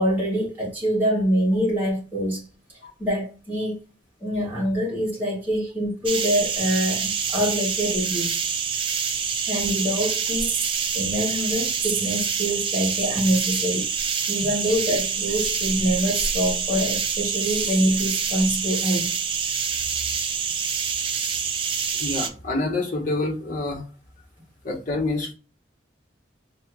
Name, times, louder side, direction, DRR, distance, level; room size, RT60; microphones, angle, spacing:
voice 1, 0.0-2.4 3.0-3.8 4.2-8.4 9.5-13.9 14.3-19.1, equal, 10° right, 1.8 m, -25 dB
sound 1, 6.1-22.3, right 6 dB, 25° right, 0.4 m, -26 dB
voice 2, 21.9-23.8 24.6-25.3, left 2 dB, 45° left, 1.3 m, -27 dB
4.3 x 2.9 x 2.3 m
head